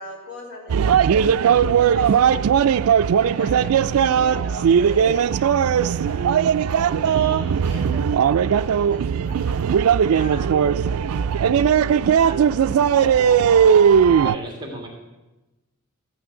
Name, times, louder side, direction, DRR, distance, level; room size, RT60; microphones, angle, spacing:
voice 1, 0.0-2.2 3.1-5.6 5.9-7.2 7.6-11.4 11.6-13.5, left 1 dB, 50° left, -3 dB, 3.6 m, -40 dB
sound 1, 0.7-14.4, right 7 dB, 80° right, 0.3 m, -18 dB
voice 2, 7.0-7.9 14.2-14.9, right 1 dB, 20° right, 1 dB, 1.9 m, -35 dB
14.0 x 6.2 x 8.1 m, 1.1 s
head